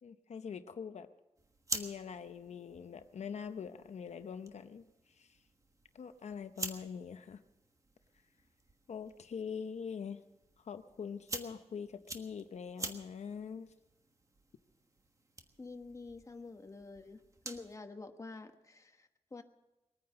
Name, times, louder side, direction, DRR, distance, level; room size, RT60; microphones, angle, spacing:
voice 1, 0.0-1.1 1.7-5.3 5.9-7.4 8.9-10.2 10.6-13.7, left 6 dB, 85° left, 10 dB, 0.7 m, -43 dB
sound 1, 1.3-17.8, right 2 dB, 30° right, 1.4 m, -48 dB
voice 2, 15.6-17.2 17.4-19.4, left 3 dB, 30° left, 6 dB, 1.2 m, -48 dB
21.5 x 9.6 x 6.7 m, 1.0 s
wide cardioid pair, 140°, 11 cm